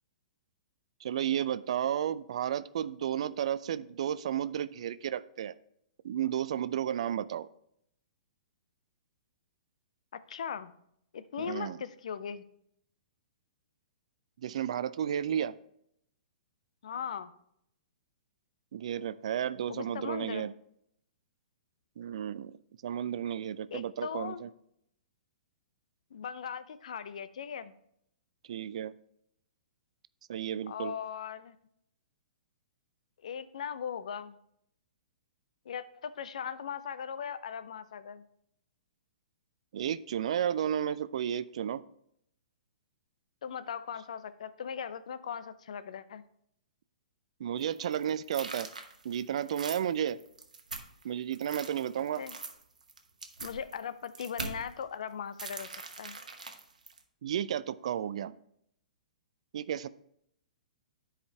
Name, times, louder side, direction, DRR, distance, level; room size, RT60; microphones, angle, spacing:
voice 1, 1.0-5.5 6.0-7.5 11.4-11.8 14.4-15.5 18.7-20.5 22.0-22.5 22.8-24.5 28.5-28.9 30.3-30.9 39.7-41.8 47.4-48.7 49.0-50.2 51.0-52.2 57.2-58.3 59.5-59.9, right 9 dB, 55° right, 16 dB, 0.3 m, -32 dB
voice 2, 10.3-10.7 11.1-12.4 16.8-17.3 19.7-20.5 23.7-24.4 26.1-27.7 30.7-31.6 33.2-34.4 35.7-38.2 43.4-46.2 52.2-52.4 53.4-56.2, left 7 dB, 60° left, 14 dB, 0.5 m, -39 dB
sound 1, 47.6-51.0 51.3-54.7 55.4-57.0, right 4 dB, 75° right, 1.0 m, -42 dB
10.5 x 4.9 x 3.3 m, 0.72 s
figure-of-eight pair, 115°, 4 cm